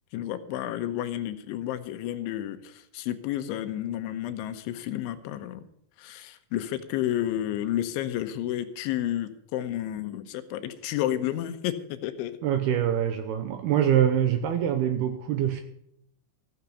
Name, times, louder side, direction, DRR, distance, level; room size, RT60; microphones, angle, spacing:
voice 1, 0.1-5.6 6.0-12.3, left 12 dB, 80° left, 10 dB, 3.2 m, -31 dB
voice 2, 12.4-15.6, right 10 dB, 80° right, 8 dB, 2.3 m, -24 dB
15.5 x 7.3 x 8.2 m, 0.72 s
omnidirectional pair, 5.5 m